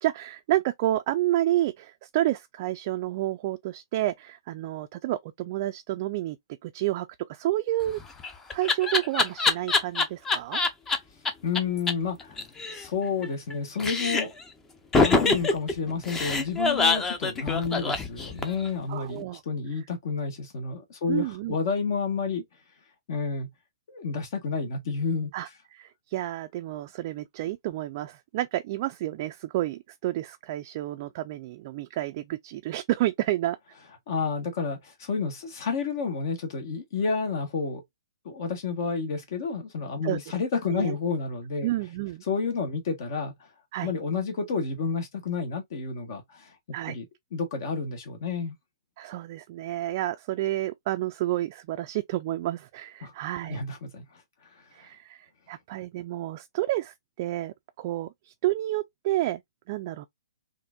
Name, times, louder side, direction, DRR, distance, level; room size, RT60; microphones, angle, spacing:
voice 1, 0.0-6.4 6.6-8.0 8.5-10.6 18.9-19.4 21.1-21.6 25.3-33.6 40.0-40.2 40.7-41.0 41.6-42.2 43.7-43.9 46.7-47.0 49.0-53.6 54.7-59.4 59.7-60.0, right 15 dB, 40° right, 0.3 m, -30 dB
Laughter, 7.9-11.0 11.2-11.3 11.5-11.6 11.9-12.0 12.2-13.5 13.8-14.4 14.9-18.7, left 3 dB, 15° left, 0.6 m, -24 dB
voice 2, 11.4-12.4 12.7-14.3 15.0-22.4 23.1-23.5 23.9-25.3 34.1-37.8 38.2-41.7 42.3-43.5 43.8-46.5 46.9-47.0 47.3-48.5 53.0-53.1 53.5-54.6, left 5 dB, 55° left, 1.1 m, -30 dB
4.3 x 2.5 x 2.3 m
hypercardioid pair, 140°, 2 cm